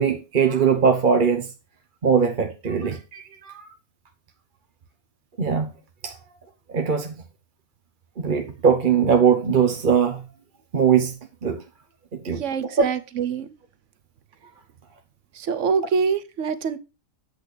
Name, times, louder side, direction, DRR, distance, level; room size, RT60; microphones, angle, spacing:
voice 1, 0.0-1.5 2.0-3.7 5.4-5.7 6.0-6.1 6.7-7.1 8.2-10.2 10.7-11.1 11.4-11.6 12.1-12.9, right 6 dB, 40° right, 1.0 m, -21 dB
voice 2, 12.3-13.5 15.3-16.8, right 6 dB, 65° right, 1.1 m, -25 dB
8.4 x 8.2 x 3.2 m
omnidirectional pair, 1.4 m